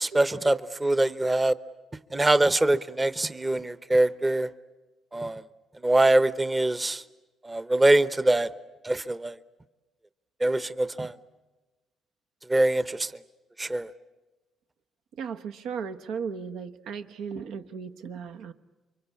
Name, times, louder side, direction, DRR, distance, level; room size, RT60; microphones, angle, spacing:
voice 1, 0.0-1.5 2.1-4.5 5.1-5.4 5.8-7.0 7.4-8.5 8.8-9.4 10.4-11.1 12.5-13.1 13.6-13.9, right 2 dB, 20° right, 0.9 m, -23 dB
voice 2, 15.2-18.5, right 6 dB, 85° right, 1.3 m, -36 dB
29.0 x 24.5 x 8.4 m
cardioid pair, 90°, 0 cm